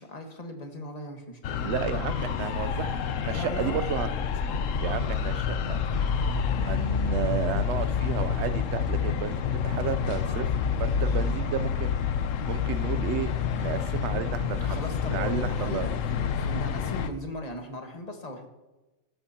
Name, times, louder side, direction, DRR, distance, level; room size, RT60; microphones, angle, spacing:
voice 1, 0.0-1.6 3.3-3.9 10.8-11.4 14.6-18.5, left 1 dB, 30° left, 3 dB, 1.5 m, -38 dB
sound 1, 1.4-17.1, left 7 dB, 70° left, 1.0 m, -28 dB
voice 2, 1.6-4.1 4.8-5.8 6.6-10.5 10.8-11.9 12.5-14.8 15.1-15.9, right 9 dB, 60° right, 12 dB, 0.8 m, -32 dB
16.5 x 13.0 x 2.9 m, 1.1 s
omnidirectional pair, 1.5 m